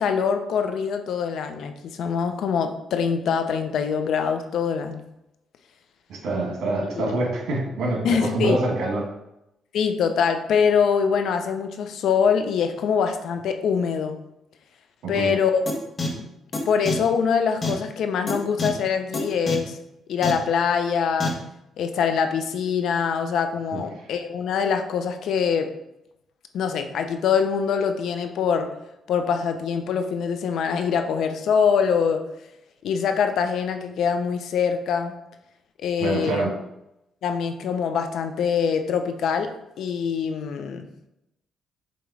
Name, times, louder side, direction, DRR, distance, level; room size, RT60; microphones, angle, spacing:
voice 1, 0.0-5.0 7.0-7.2 8.0-8.6 9.7-14.2 15.1-15.6 16.2-16.3 16.7-19.8 20.1-21.3 21.8-25.7 26.5-28.7 29.1-32.2 32.8-35.1 35.8-36.4 37.2-39.5 39.8-40.8, left 6 dB, 75° left, 7 dB, 0.7 m, -24 dB
voice 2, 6.1-9.1 15.0-15.4 23.7-24.0 36.0-36.5, right 2 dB, 75° right, -1 dB, 1.9 m, -26 dB
sound 1, 15.7-15.8 16.0-16.1 16.5-16.6 16.9-17.0 17.6-17.7 18.3-18.4 18.6-18.7 19.1-19.2 19.5-19.6 20.2-20.3 21.2-21.3, left 3 dB, 40° left, 1.4 m, -25 dB
7.0 x 3.1 x 4.8 m, 0.87 s
cardioid pair, 90°, 0 cm